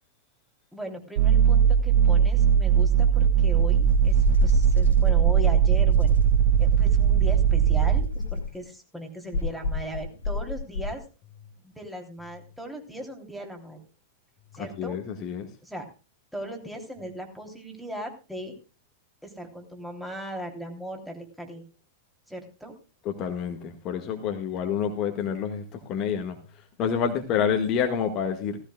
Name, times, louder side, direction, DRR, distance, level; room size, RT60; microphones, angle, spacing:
voice 1, 0.7-6.1 6.6-11.0 11.6-13.8 14.5-15.0 15.6-15.9 16.3-18.5 19.2-21.6 22.3-22.7, equal, ahead, 2 dB, 3.3 m, -38 dB
sound 1, 1.2-8.0, right 8 dB, 60° right, 0.9 m, -19 dB
sound 2, 3.8-5.1 6.0-7.3 7.9-8.6 9.3-11.0, left 2 dB, 65° left, 2.3 m, -29 dB
voice 2, 14.6-15.5 23.1-28.6, left 7 dB, 35° left, 5 dB, 1.7 m, -28 dB
17.0 x 15.5 x 2.3 m, 0.32 s
figure-of-eight pair, 90°, 0 cm